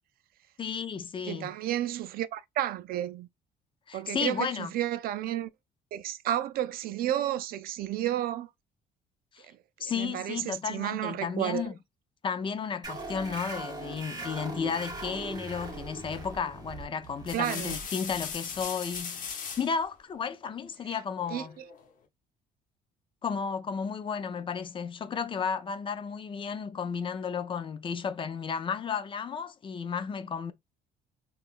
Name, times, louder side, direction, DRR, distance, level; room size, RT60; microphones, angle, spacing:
voice 1, 0.6-1.5 3.9-4.7 9.3-9.5 9.8-11.7 12.2-19.2 19.6-21.5 23.2-30.5, left 6 dB, 30° left, 0.4 m, -33 dB
voice 2, 1.3-3.3 3.9-5.5 5.9-8.5 9.9-11.7 17.3-17.8 20.9-21.0 21.3-21.4, right 12 dB, 60° right, 0.4 m, -31 dB
sound 1, 12.8-20.0, right 2 dB, 25° right, 1.1 m, -41 dB
sound 2, 16.1-16.4 17.0-19.7 21.2-21.9, left 6 dB, 50° left, 0.8 m, -39 dB
3.5 x 2.3 x 2.4 m
cardioid pair, 110°, 17 cm